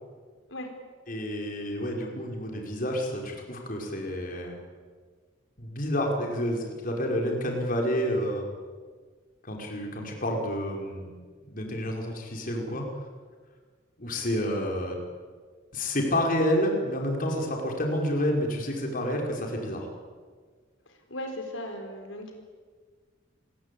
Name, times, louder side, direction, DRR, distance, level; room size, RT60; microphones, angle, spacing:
voice 1, 1.1-4.6 5.6-8.5 9.4-11.2 11.4-12.9 14.0-15.0 15.7-19.9, equal, 45° left, 1 dB, 5.1 m, -29 dB
voice 2, 20.9-22.3, left 1 dB, 90° left, 4 dB, 4.3 m, -37 dB
27.0 x 21.5 x 8.6 m, 1.6 s
head